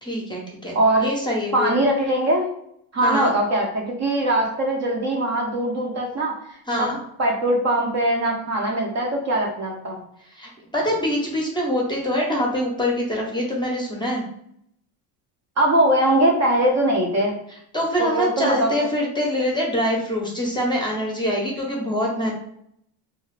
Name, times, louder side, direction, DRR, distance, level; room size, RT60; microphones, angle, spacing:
voice 1, 0.0-1.8 3.0-3.3 6.7-7.0 10.3-14.2 17.7-22.3, equal, 10° left, -2 dB, 0.7 m, -24 dB
voice 2, 0.7-1.1 1.5-2.5 2.9-6.4 6.7-6.9 7.2-9.9 15.6-17.4 18.0-18.7, right 1 dB, 35° right, 0 dB, 0.6 m, -21 dB
2.4 x 2.3 x 3.1 m, 0.73 s
cardioid pair, 110°, 48 cm